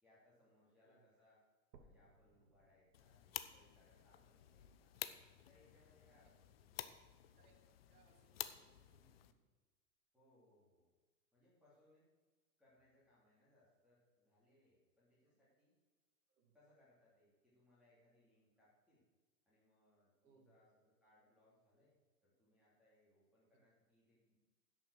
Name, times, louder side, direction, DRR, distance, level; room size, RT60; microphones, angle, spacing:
voice 1, 0.0-1.4 1.8-5.0 5.5-7.1 10.1-10.9 11.3-12.1 12.6-15.7 16.5-19.0 19.4-21.9 22.2-24.4, left 1 dB, ahead, -9 dB, 2.9 m, -73 dB
sound 1, 1.7-5.7 6.3-6.4 7.0-7.1 7.4-7.5 8.3-8.4, right 3 dB, 80° right, 1.5 m, -70 dB
sound 2, 2.9-9.3, left 12 dB, 40° left, 0.5 m, -51 dB
voice 2, 7.4-9.5 15.3-15.4 16.3-16.5 18.6-18.7 20.2-20.6, right 4 dB, 60° right, 1 dB, 2.6 m, -73 dB
10.5 x 6.3 x 6.3 m, 1.3 s
hypercardioid pair, 150°, 49 cm